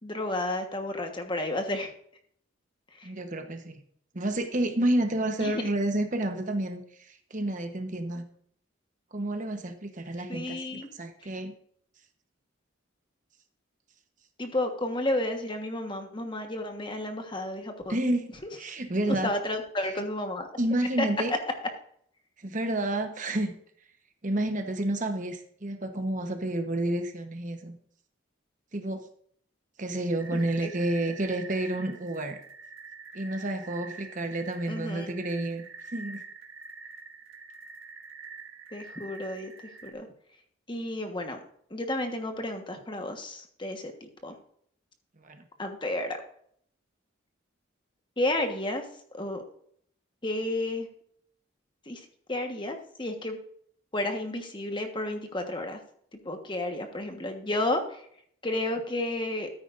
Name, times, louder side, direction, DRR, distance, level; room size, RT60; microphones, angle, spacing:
voice 1, 0.0-1.9 3.0-3.1 5.4-5.6 10.3-10.9 11.2-11.3 14.4-18.0 18.4-18.5 19.1-20.5 21.0-21.1 30.6-30.7 34.7-35.1 38.7-39.5 39.8-40.1 40.7-41.4 41.7-44.3 45.6-46.2 48.2-48.8 49.1-49.4 50.2-50.9 51.9-53.4 53.9-55.8 56.2-58.0 58.4-59.5, left 1 dB, 25° left, 5 dB, 1.3 m, -32 dB
voice 2, 3.0-3.8 4.1-8.2 9.1-11.5 17.9-18.3 18.6-19.3 20.6-21.3 22.4-23.5 24.2-27.8 28.7-29.0 29.8-32.4 33.1-36.2 45.2-45.4, right 1 dB, 40° right, 6 dB, 1.0 m, -30 dB
sound 1, 30.2-39.9, right 4 dB, 80° right, 1.5 m, -46 dB
13.5 x 9.4 x 2.6 m, 0.65 s
head